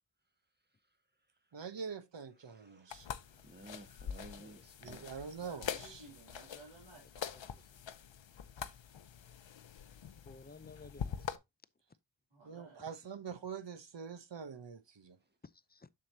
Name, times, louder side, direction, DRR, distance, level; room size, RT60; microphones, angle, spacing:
voice 1, 0.6-1.6 2.4-5.1 8.3-8.5 15.2-15.4, right 1 dB, 20° right, 1.4 m, -57 dB
voice 2, 1.5-3.1 4.8-6.1 12.4-15.2, right 6 dB, 65° right, 1.0 m, -45 dB
sound 1, 2.9-11.4, left 8 dB, 70° left, 0.7 m, -44 dB
voice 3, 5.4-7.6 12.3-12.8, right 3 dB, 80° right, 3.2 m, -57 dB
voice 4, 7.3-7.7 10.2-11.3 15.4-15.9, left 3 dB, 20° left, 0.5 m, -55 dB
7.5 x 6.5 x 2.7 m
wide cardioid pair, 50°, 47 cm